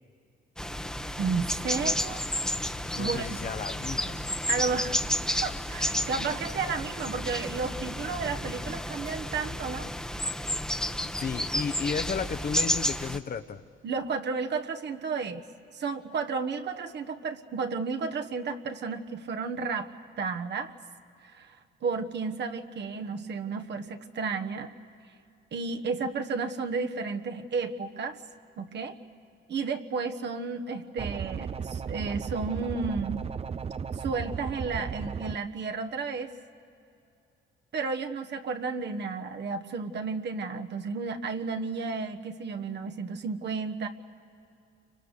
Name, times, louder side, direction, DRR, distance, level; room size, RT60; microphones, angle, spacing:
sound 1, 0.6-13.2, left 1 dB, 5° left, 1.1 m, -31 dB
voice 1, 1.2-2.2 2.7-3.3 4.5-5.1 5.4-9.9 13.8-15.4 15.7-19.9 20.2-20.7 21.2-24.7 25.5-28.2 28.6-29.0 29.5-33.2 33.9-36.3 37.7-43.9, right 4 dB, 60° right, 5 dB, 1.4 m, -32 dB
voice 2, 2.9-4.2 11.2-13.6, left 6 dB, 45° left, 9 dB, 1.1 m, -33 dB
sound 2, 31.0-35.4, right 6 dB, 30° right, 0.5 m, -35 dB
29.5 x 24.5 x 6.7 m, 2.6 s
cardioid pair, 90°, 20 cm